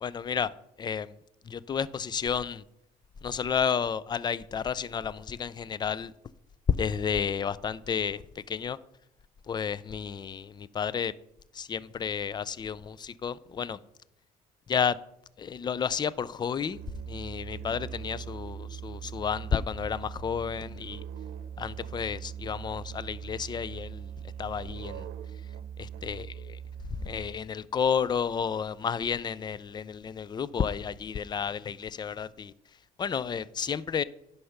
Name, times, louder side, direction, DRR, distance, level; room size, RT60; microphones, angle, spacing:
voice 1, 0.0-0.5 0.8-1.1 1.4-2.6 3.2-6.1 6.8-8.8 9.5-11.1 11.5-13.8 14.7-15.0 15.4-16.8 17.1-21.0 21.6-24.1 24.4-25.1 25.8-26.6 26.9-32.5 33.0-34.0, left 7 dB, 25° left, 0.4 m, -31 dB
Musical instrument, 16.7-27.5, right 8 dB, 75° right, 0.8 m, -41 dB
9.9 x 5.6 x 5.8 m
cardioid pair, 110°, 17 cm